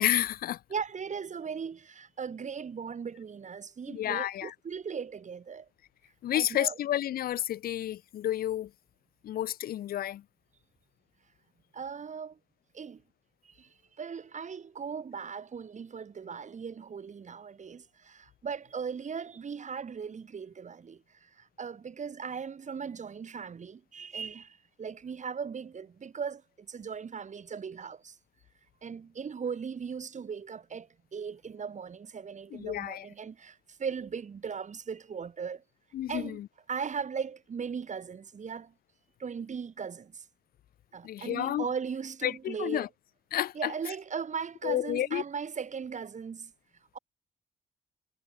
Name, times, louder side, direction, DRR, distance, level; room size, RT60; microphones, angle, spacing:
voice 1, 0.0-0.6 3.9-4.5 6.2-8.7 9.2-10.2 32.5-33.1 35.9-36.5 41.0-41.7 42.2-42.9 43.3-43.7 44.6-45.2, left 12 dB, 75° left, 1.7 m, -30 dB
voice 2, 0.7-5.7 6.3-6.8 11.7-12.4 12.7-13.0 13.4-13.7 14.0-28.2 28.8-35.6 36.1-36.4 36.7-38.7 39.2-40.2 40.9-42.9 43.5-46.5 46.9-47.0, right 6 dB, 50° right, 4.6 m, -38 dB
supercardioid pair, 55°, 15 cm